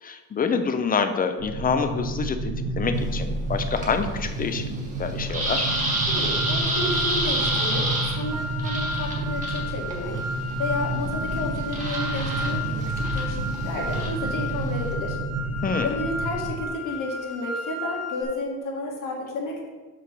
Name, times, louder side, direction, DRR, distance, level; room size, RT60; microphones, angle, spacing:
voice 1, 0.0-4.7 5.0-5.7 15.6-16.0, left 5 dB, 25° left, 8 dB, 0.5 m, -27 dB
sound 1, 1.4-16.6, right 2 dB, 60° right, 0.8 m, -30 dB
sound 2, 2.9-14.9, right 1 dB, 20° right, 1.6 m, -30 dB
sound 3, 5.5-18.2, left 2 dB, ahead, 1.4 m, -34 dB
voice 2, 6.0-10.2 10.6-15.2 15.8-19.7, left 2 dB, 60° left, -1 dB, 1.7 m, -32 dB
6.0 x 4.5 x 5.9 m, 1.3 s
cardioid pair, 160°, 35 cm